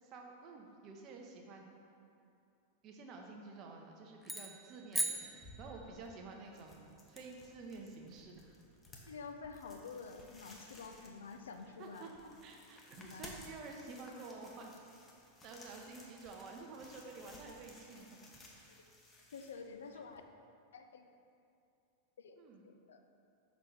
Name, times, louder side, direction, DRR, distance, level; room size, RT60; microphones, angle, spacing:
voice 1, 0.0-1.8 2.8-5.3 5.6-8.5 10.7-10.8 11.8-12.1 12.4-14.7 15.4-18.1 22.4-22.7, right 3 dB, 35° right, 2 dB, 0.7 m, -50 dB
sound 1, 4.2-6.2, right 1 dB, ahead, 0.4 m, -39 dB
sound 2, 5.1-20.2, left 1 dB, 20° left, 0.9 m, -58 dB
voice 2, 9.1-12.1 13.0-13.3 18.7-18.9 19.3-20.2 20.7-21.1 22.2-22.3 22.9-23.0, left 5 dB, 65° left, 6 dB, 0.4 m, -49 dB
5.5 x 4.1 x 4.7 m, 2.6 s
figure-of-eight pair, 90°, 0 cm